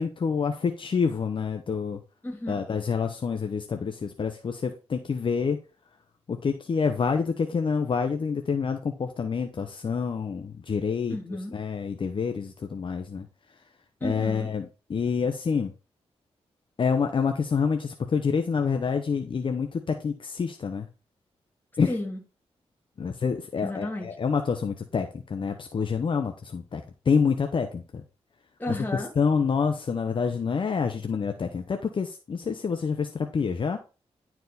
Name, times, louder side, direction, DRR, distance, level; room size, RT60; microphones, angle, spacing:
voice 1, 0.0-2.0 2.5-5.6 6.3-11.2 11.5-13.2 14.0-15.7 16.8-20.9 21.8-21.9 23.0-27.8 29.2-33.8, left 5 dB, 50° left, 0.9 m, -27 dB
voice 2, 2.2-2.6 11.1-11.5 14.0-14.5 21.9-22.2 23.6-24.2 28.6-29.1, left 1 dB, 15° left, 2.6 m, -32 dB
11.0 x 4.6 x 4.1 m
cardioid pair, 95°, 11 cm